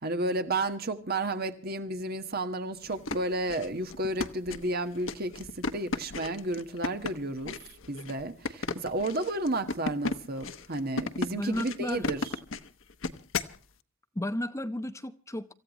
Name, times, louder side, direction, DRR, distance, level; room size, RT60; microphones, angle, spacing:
voice 1, 0.0-7.6 7.9-12.4, right 2 dB, 50° right, 1.6 m, -32 dB
sound 1, 2.8-13.6, left 3 dB, 80° left, 1.0 m, -35 dB
voice 2, 11.3-12.1 14.1-15.5, left 1 dB, 15° left, 0.8 m, -33 dB
26.5 x 15.0 x 3.1 m
head